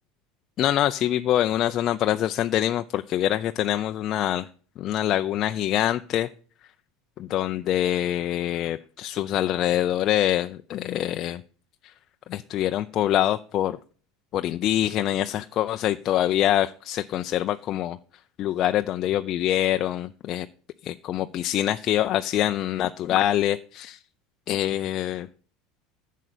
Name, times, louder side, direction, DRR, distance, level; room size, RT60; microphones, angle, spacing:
voice 1, 0.6-4.5 4.8-6.3 7.2-11.4 12.3-13.8 14.3-18.0 18.4-20.5 20.8-24.0 24.5-25.3, left 12 dB, 45° left, 8 dB, 0.5 m, -25 dB
11.0 x 7.5 x 6.8 m, 0.43 s
supercardioid pair, 110°, 0 cm